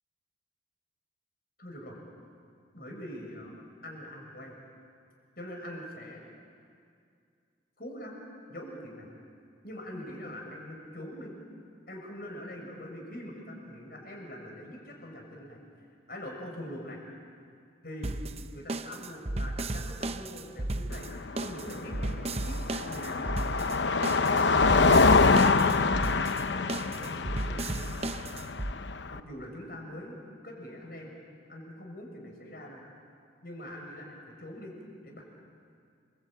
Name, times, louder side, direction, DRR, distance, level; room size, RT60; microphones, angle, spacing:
voice 1, 1.6-2.0 2.7-3.5 3.8-4.6 5.4-6.2 7.8-8.2 8.5-9.1 9.6-11.3 11.9-15.6 16.1-17.0 17.8-18.2 18.5-23.7 24.3-27.8 29.1-31.1 31.5-32.8 33.4-34.7 35.0-35.2, equal, 50° left, 1 dB, 6.5 m, -43 dB
sound 1, 18.0-28.7, right 2 dB, 35° right, 0.7 m, -34 dB
Car passing by, 20.9-29.2, left 4 dB, 70° left, 0.8 m, -25 dB
29.5 x 22.5 x 9.0 m, 2.3 s
head